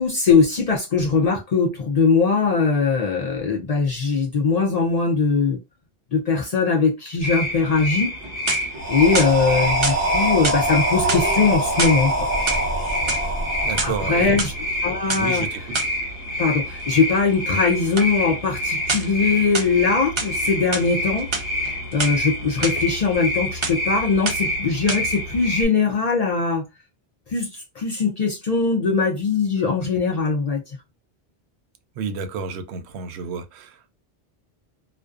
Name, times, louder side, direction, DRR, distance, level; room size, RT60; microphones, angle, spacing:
voice 1, 0.0-5.6 6.1-8.1 8.9-12.3 13.8-14.5 14.8-15.4 16.4-21.3 21.9-26.7 27.3-30.6, left 4 dB, 55° left, 0.4 m, -21 dB
sound 1, 7.2-25.6, left 1 dB, 20° left, 1.0 m, -28 dB
sound 2, 8.2-8.8 9.1-10.0 10.4-10.7 11.0-12.0 12.4-13.3 13.6-14.5 15.1-15.2 15.7-16.0 18.0-18.1 18.9-19.2 19.5-20.3 20.7-20.9 21.2-22.1 22.6-22.7 23.1-23.4 23.6-23.9 24.3-24.6 24.9-25.0, right 3 dB, 45° right, 0.4 m, -27 dB
sound 3, 8.8-14.7, right 1 dB, 15° right, 1.0 m, -24 dB
voice 2, 13.6-14.4 15.1-15.6 32.0-33.9, right 5 dB, 90° right, 0.8 m, -30 dB
2.5 x 2.1 x 2.3 m
omnidirectional pair, 1.1 m